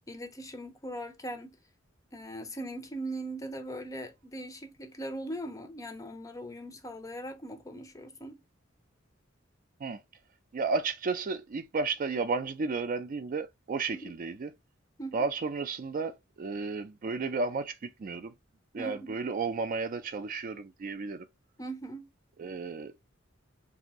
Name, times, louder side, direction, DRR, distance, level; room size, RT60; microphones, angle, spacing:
voice 1, 0.1-1.6 2.1-8.4 13.9-14.1 15.0-15.3 18.8-19.2 21.6-22.1, right 1 dB, 15° left, 0.5 m, -40 dB
voice 2, 10.5-14.5 15.1-18.3 18.7-21.3 22.4-22.9, right 4 dB, 45° right, 0.4 m, -33 dB
2.7 x 2.5 x 4.0 m
head